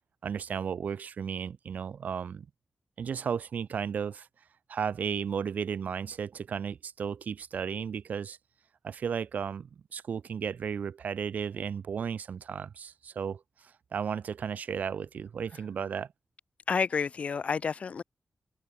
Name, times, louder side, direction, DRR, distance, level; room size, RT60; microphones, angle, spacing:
voice 1, 0.2-2.5 3.0-4.3 4.7-8.4 8.8-16.1, right 7 dB, 85° right, 1.3 m, -34 dB
voice 2, 16.7-18.0, left 5 dB, 55° left, 0.3 m, -29 dB
open air
wide cardioid pair, 140°, 3 cm